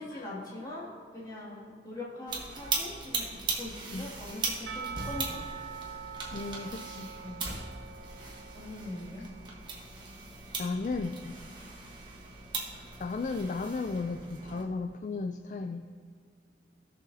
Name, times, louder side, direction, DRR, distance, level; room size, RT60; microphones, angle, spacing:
voice 1, 0.0-5.5 7.2-7.5 8.5-9.2, left 1 dB, 20° left, -6 dB, 2.2 m, -42 dB
sound 1, 2.3-14.6, right 3 dB, 25° right, 1.2 m, -39 dB
Percussion / Church bell, 4.7-9.4, right 7 dB, 80° right, 0.6 m, -44 dB
voice 2, 6.3-7.1 10.6-11.3 11.8-11.9 13.0-15.9, left 3 dB, 45° left, 7 dB, 0.3 m, -35 dB
17.0 x 6.5 x 2.7 m, 2.1 s
head